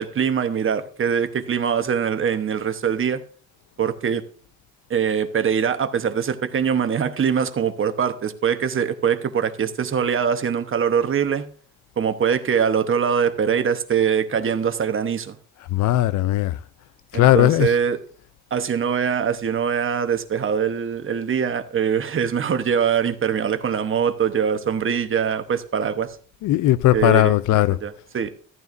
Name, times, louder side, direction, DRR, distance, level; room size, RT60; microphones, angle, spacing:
voice 1, 0.0-3.2 3.8-4.2 4.9-11.4 12.0-15.4 17.1-18.0 18.5-26.2 26.9-28.3, right 7 dB, 45° right, 1.0 m, -23 dB
voice 2, 15.7-16.6 17.1-17.8 26.4-27.8, left 15 dB, 75° left, 0.5 m, -18 dB
14.0 x 9.5 x 2.6 m
cardioid pair, 90°, 30 cm